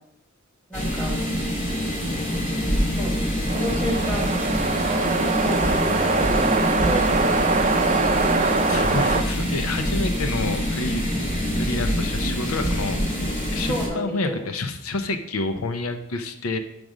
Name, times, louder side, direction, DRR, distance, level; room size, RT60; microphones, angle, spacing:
sound 1, 0.7-13.9, equal, 40° left, 2.3 m, -25 dB
voice 1, 0.7-1.2 3.0-4.4 4.8-7.6 13.7-14.4, equal, 10° left, -2 dB, 1.5 m, -31 dB
sound 2, 3.5-9.2, right 3 dB, 30° right, 0.5 m, -23 dB
voice 2, 8.7-11.1 11.6-13.0 13.5-16.6, left 3 dB, 80° left, 8 dB, 0.6 m, -28 dB
6.2 x 5.2 x 6.1 m, 0.83 s
head